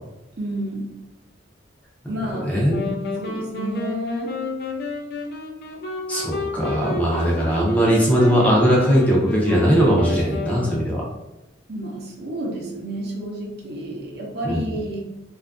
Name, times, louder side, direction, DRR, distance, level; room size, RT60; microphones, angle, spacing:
voice 1, 0.4-0.9 2.1-2.6 3.2-4.3 11.7-15.0, right 1 dB, 55° right, -1 dB, 0.6 m, -30 dB
voice 2, 2.2-2.9 6.1-11.0 14.4-14.6, equal, 10° left, -4 dB, 0.5 m, -19 dB
sound 1, 2.7-11.1, left 3 dB, 55° left, 0.4 m, -31 dB
2.6 x 2.4 x 2.3 m, 0.95 s
head